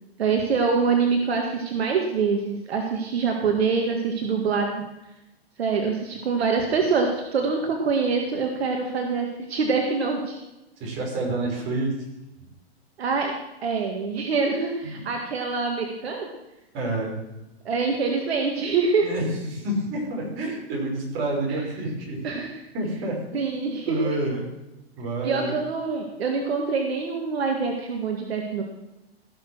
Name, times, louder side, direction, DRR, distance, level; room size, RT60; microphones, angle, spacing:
voice 1, 0.2-4.8 5.6-10.4 13.0-13.3 13.6-16.3 17.7-19.1 21.5-21.6 22.2-22.5 23.3-24.2 25.2-28.6, right 5 dB, 75° right, 2 dB, 2.0 m, -25 dB
voice 2, 10.8-12.0 14.8-15.1 16.7-17.1 19.0-22.4 22.7-23.4 23.9-24.4 25.0-25.6, right 2 dB, 40° right, -1 dB, 5.5 m, -28 dB
16.5 x 7.0 x 6.2 m, 0.97 s
hypercardioid pair, 130°, 31 cm